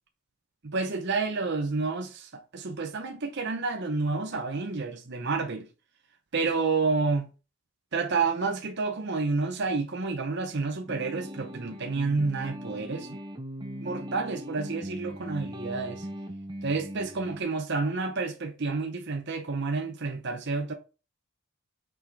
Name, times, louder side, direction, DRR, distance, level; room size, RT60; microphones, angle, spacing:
voice 1, 0.6-2.3 2.5-5.7 6.3-7.3 7.9-13.1 13.8-16.0 16.6-20.7, right 4 dB, 55° right, 0.8 m, -29 dB
sound 1, 10.9-17.4, equal, 20° right, 0.8 m, -39 dB
6.1 x 4.9 x 4.6 m
head